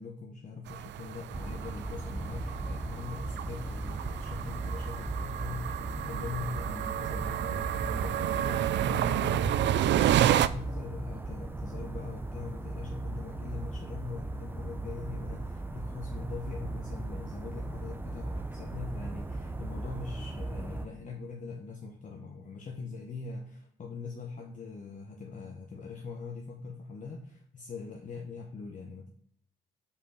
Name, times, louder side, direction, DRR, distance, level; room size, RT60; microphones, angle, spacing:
voice 1, 0.0-29.1, left 4 dB, 40° left, 1 dB, 0.9 m, -42 dB
sound 1, 0.7-10.5, right 11 dB, 65° right, 0.4 m, -30 dB
sound 2, 1.3-20.9, right 2 dB, 10° right, 0.6 m, -37 dB
5.4 x 4.4 x 4.8 m, 0.64 s
cardioid pair, 90°, 20 cm